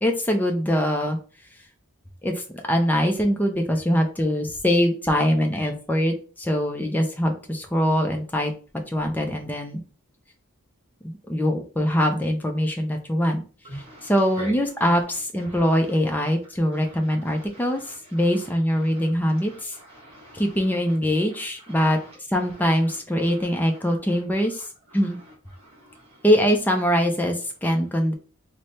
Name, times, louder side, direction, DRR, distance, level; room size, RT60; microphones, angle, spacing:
voice 1, 0.0-1.2 2.2-8.5 8.9-9.8 11.0-13.4 13.7-17.8 18.1-19.7 20.3-22.0 22.3-24.7 24.9-25.2 26.2-28.1, equal, 10° left, 3 dB, 0.4 m, -23 dB
voice 2, 13.6-14.5 15.5-15.7 16.7-17.0 17.2-18.4 18.8-20.6 21.3-22.1 23.2-23.4 24.3-24.4 25.5-26.2, right 1 dB, 30° right, -2 dB, 1.5 m, -45 dB
3.2 x 2.1 x 4.1 m, 0.38 s
head